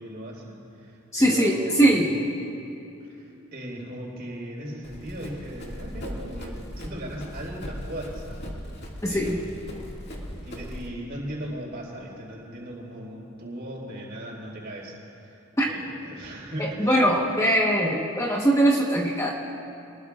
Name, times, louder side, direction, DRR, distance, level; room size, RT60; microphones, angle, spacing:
voice 1, 0.0-2.2 3.2-8.7 9.1-9.5 10.4-17.0, right 1 dB, 45° right, -2 dB, 4.3 m, -38 dB
voice 2, 1.1-2.1 9.0-9.4 15.6-15.7 16.6-19.3, right 1 dB, 15° left, -1 dB, 1.1 m, -21 dB
Run, 4.8-10.9, equal, 50° left, 2.1 m, -38 dB
27.5 x 20.0 x 2.4 m, 2.8 s
head